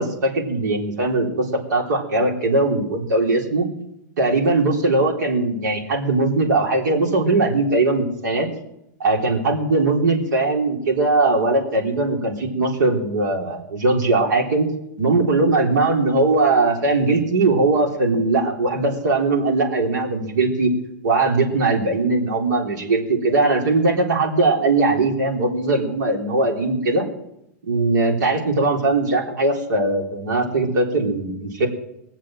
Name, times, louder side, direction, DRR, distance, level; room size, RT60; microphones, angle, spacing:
voice 1, 0.0-3.7 4.2-8.5 9.0-14.7 15.0-20.7 21.0-27.0 27.6-31.7, right 2 dB, 90° right, 0 dB, 3.8 m, -20 dB
21.0 x 7.4 x 7.7 m, 0.80 s
hypercardioid pair, 130°, 10 cm